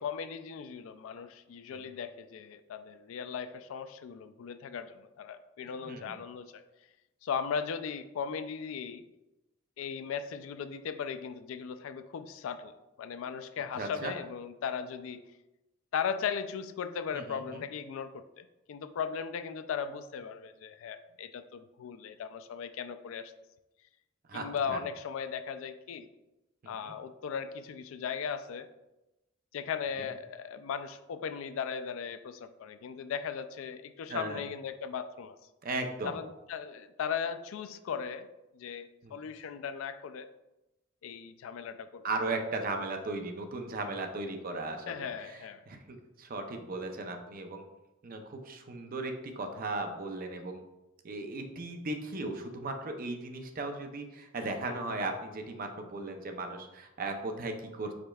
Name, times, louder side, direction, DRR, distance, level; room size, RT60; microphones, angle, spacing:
voice 1, 0.0-6.6 7.2-9.0 9.8-15.2 15.9-23.3 24.3-26.1 26.7-28.7 29.5-35.4 36.0-38.3 38.5-40.3 41.0-42.0 44.9-45.6 54.7-55.1, left 7 dB, 75° left, 12 dB, 0.3 m, -37 dB
voice 2, 5.6-6.1 13.7-14.1 17.1-17.6 24.3-24.8 26.6-26.9 34.1-34.4 35.6-36.2 39.0-39.2 42.0-47.6 48.0-50.6 51.0-57.9, right 2 dB, 45° right, 5 dB, 0.5 m, -37 dB
5.0 x 4.3 x 2.3 m, 0.97 s
head